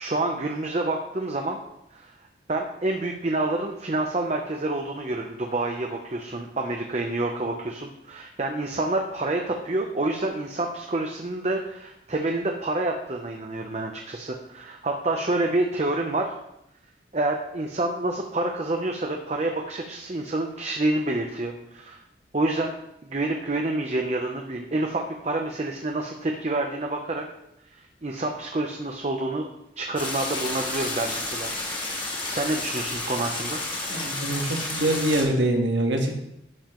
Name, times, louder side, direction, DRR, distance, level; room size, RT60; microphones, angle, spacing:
voice 1, 0.0-1.6 1.9-2.1 2.5-16.3 17.1-22.0 22.3-22.7 23.0-27.2 27.7-29.5 29.8-31.5 32.3-33.6, right 2 dB, 35° right, 2 dB, 0.7 m, -28 dB
sound 1, 30.0-35.2, left 2 dB, 25° left, 1.8 m, -31 dB
voice 2, 33.9-36.1, right 1 dB, 75° right, 2 dB, 1.5 m, -24 dB
12.0 x 7.2 x 3.1 m, 0.83 s
head